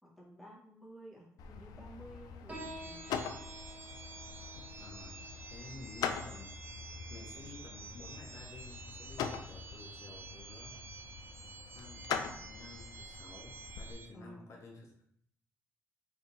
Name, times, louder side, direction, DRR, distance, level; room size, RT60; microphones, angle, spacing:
voice 1, 0.0-3.3 14.1-14.5, equal, ahead, -4 dB, 1.0 m, -53 dB
sound 1, 1.4-13.9, left 7 dB, 85° left, 0.4 m, -43 dB
Piano, 2.5-9.5, right 1 dB, 20° right, 0.9 m, -53 dB
sound 2, 2.5-14.1, right 5 dB, 40° right, 0.4 m, -51 dB
voice 2, 4.8-10.9 11.7-12.1 12.5-15.0, left 3 dB, 50° left, 0 dB, 0.7 m, -52 dB
3.2 x 2.6 x 3.9 m, 0.70 s
cardioid pair, 140°, 6 cm